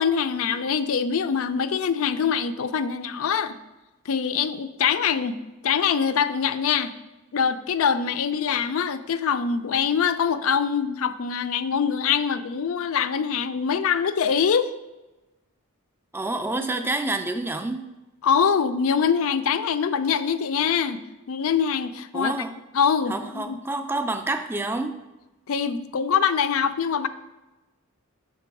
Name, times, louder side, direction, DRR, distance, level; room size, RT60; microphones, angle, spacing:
voice 1, 0.0-3.6 4.1-5.4 5.6-6.9 7.3-14.7 18.2-22.4 22.7-23.6 25.5-27.1, left 7 dB, 65° left, 12 dB, 0.4 m, -24 dB
voice 2, 16.1-17.9 22.1-22.5 23.1-25.0, right 2 dB, 10° right, 8 dB, 0.3 m, -28 dB
5.9 x 3.8 x 5.8 m, 1.1 s
head